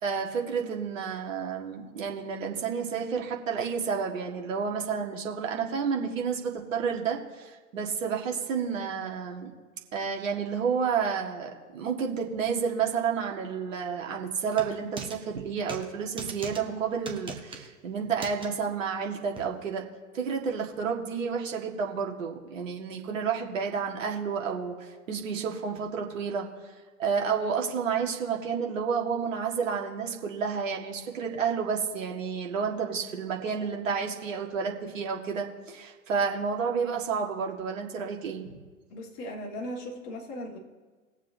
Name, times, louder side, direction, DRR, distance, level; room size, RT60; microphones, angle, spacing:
voice 1, 0.0-9.5 9.9-19.8 20.1-26.7 27.0-38.5, right 6 dB, 60° right, 1 dB, 1.9 m, -30 dB
sound 1, 14.5-15.2 15.7-15.9 16.2-16.6 17.1-17.7 18.2-18.5 19.4-19.5, right 5 dB, 10° right, 1.1 m, -39 dB
voice 2, 38.9-40.6, equal, 40° left, -2 dB, 2.1 m, -38 dB
20.5 x 7.3 x 2.8 m, 1.4 s
figure-of-eight pair, 100°, 44 cm